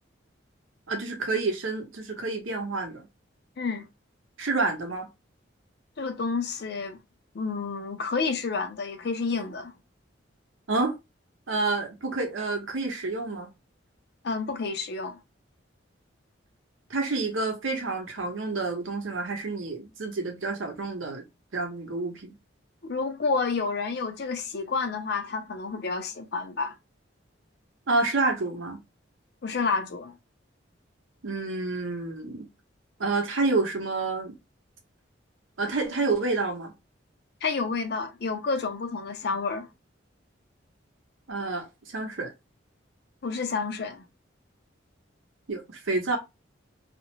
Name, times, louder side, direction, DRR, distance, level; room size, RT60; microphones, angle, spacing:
voice 1, 0.9-3.0 4.4-5.1 10.7-10.9 11.5-13.5 16.9-21.2 21.5-22.3 27.9-28.8 31.2-32.5 33.0-34.3 35.6-36.7 41.3-42.3 45.5-46.2, right 3 dB, 85° right, 0.8 m, -29 dB
voice 2, 6.0-7.0 7.3-9.7 14.2-15.2 22.8-26.7 29.4-30.2 37.4-39.7 43.2-44.0, left 4 dB, 55° left, 0.5 m, -29 dB
2.5 x 2.0 x 2.9 m
head